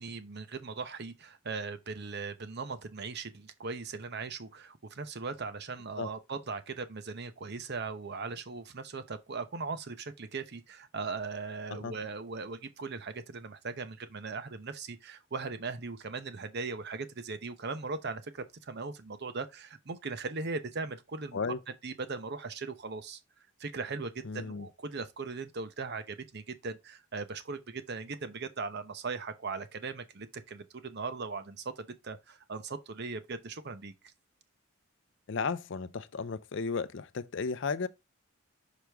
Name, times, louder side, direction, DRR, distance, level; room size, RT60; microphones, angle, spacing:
voice 1, 0.0-21.4 21.8-23.2 23.6-33.9, right 4 dB, 55° right, 0.8 m, -39 dB
voice 2, 24.3-24.7 35.3-37.9, left 5 dB, 60° left, 0.5 m, -34 dB
6.2 x 5.0 x 3.4 m
head